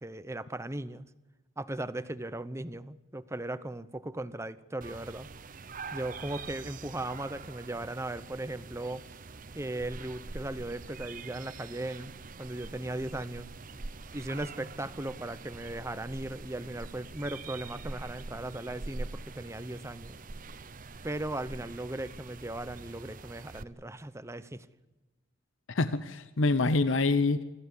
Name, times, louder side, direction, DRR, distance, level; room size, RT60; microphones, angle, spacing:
voice 1, 0.0-1.1 1.6-5.3 5.9-9.0 9.5-12.1 12.4-13.5 14.1-20.2 21.0-24.7, right 1 dB, 15° right, 14 dB, 0.8 m, -37 dB
sound 1, 4.8-23.6, right 3 dB, 45° right, 0.8 m, -44 dB
voice 2, 25.7-27.4, left 3 dB, 75° left, 12 dB, 0.8 m, -26 dB
25.5 x 14.5 x 8.3 m, 1.2 s
head